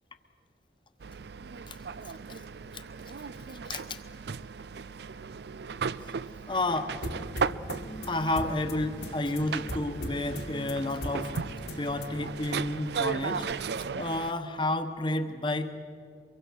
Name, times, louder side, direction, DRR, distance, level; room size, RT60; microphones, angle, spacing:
sound 1, 1.0-14.3, right 5 dB, 70° right, 0.5 m, -36 dB
voice 1, 3.6-4.0 6.5-6.9 8.1-11.3 11.8-13.5 14.0-15.7, left 2 dB, 25° left, 8 dB, 1.2 m, -30 dB
sound 2, 7.0-12.3, equal, 80° left, 2.0 m, -40 dB
24.5 x 23.0 x 6.4 m, 2.4 s
head